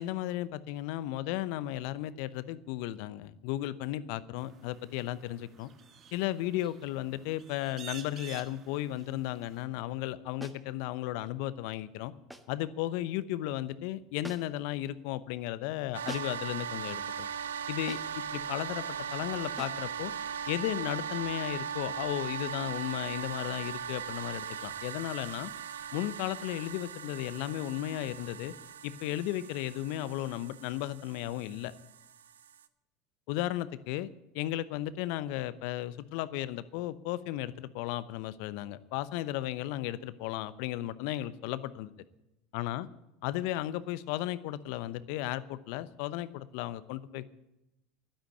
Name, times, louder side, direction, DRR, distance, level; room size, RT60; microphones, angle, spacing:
voice 1, 0.0-5.7 6.1-12.1 12.5-17.3 17.7-18.8 19.1-20.1 20.5-25.5 25.9-28.5 28.8-31.7 33.3-34.1 34.3-41.9 42.5-42.9 43.2-47.3, left 14 dB, 65° left, 16 dB, 0.8 m, -35 dB
sound 1, 4.4-9.6, right 8 dB, 40° right, 1.5 m, -51 dB
sound 2, 10.4-10.7 12.3-12.6 14.2-14.7 16.1-16.5 17.9-18.2 19.6-19.9, equal, 5° right, 1.6 m, -45 dB
sound 3, 15.9-32.7, right 7 dB, 80° right, 0.7 m, -39 dB
11.5 x 10.0 x 7.9 m, 0.92 s
hypercardioid pair, 75°, 0 cm